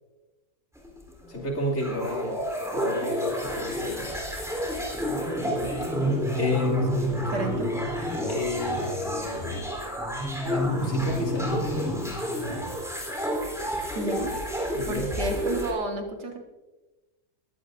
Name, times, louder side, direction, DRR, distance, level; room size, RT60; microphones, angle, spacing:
sound 1, 0.8-15.7, equal, ahead, 3.6 m, -29 dB
voice 1, 1.3-2.4 2.7-4.1 6.4-6.8 8.3-9.9 10.4-11.9 14.7-15.1, left 1 dB, 55° left, -3 dB, 3.1 m, -31 dB
voice 2, 6.9-7.7 13.9-14.4 14.9-16.4, right 2 dB, 85° right, 3 dB, 2.3 m, -32 dB
21.0 x 16.0 x 2.6 m, 1.1 s
omnidirectional pair, 1.7 m